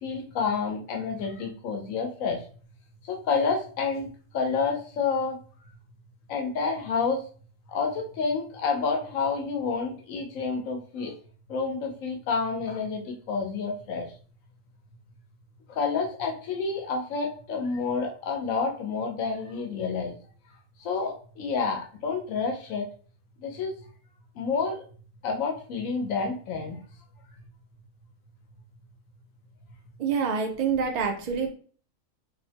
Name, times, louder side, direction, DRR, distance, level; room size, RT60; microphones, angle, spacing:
voice 1, 0.0-2.4 3.1-4.1 4.3-5.4 6.3-7.2 7.7-11.1 11.5-14.1 15.8-20.1 20.8-22.8 23.4-23.7 24.4-24.8 25.2-26.8, left 5 dB, 90° left, 3 dB, 1.1 m, -29 dB
voice 2, 30.0-31.5, right 6 dB, 75° right, 3 dB, 0.3 m, -26 dB
3.2 x 2.1 x 2.7 m, 0.42 s
omnidirectional pair, 1.4 m